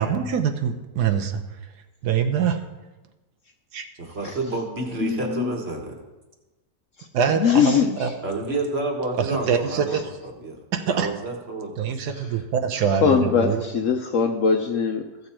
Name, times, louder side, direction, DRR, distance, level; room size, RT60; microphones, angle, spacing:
voice 1, 0.0-1.4 2.0-2.6 3.7-3.9 7.1-7.7 8.0-8.1 9.2-10.0 10.7-11.1 11.8-13.6, right 7 dB, 75° right, 7 dB, 1.3 m, -24 dB
voice 2, 4.0-5.9 8.2-10.0 10.4-10.6 10.8-11.9, right 2 dB, 40° right, 2 dB, 1.5 m, -29 dB
voice 3, 5.0-5.5 7.0-7.1 7.4-8.1 9.9-10.0 12.1-12.3 13.0-15.3, left 6 dB, 60° left, 4 dB, 0.9 m, -22 dB
14.5 x 6.9 x 4.3 m, 1.1 s
omnidirectional pair, 1.8 m